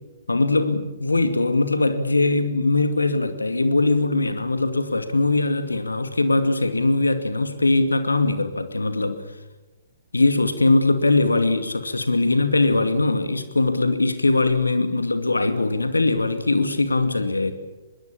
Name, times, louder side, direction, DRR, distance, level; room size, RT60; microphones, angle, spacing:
voice 1, 0.3-9.2 10.1-17.5, left 2 dB, 75° left, 9 dB, 2.4 m, -21 dB
25.5 x 21.5 x 8.6 m, 1.1 s
figure-of-eight pair, 125°, 0 cm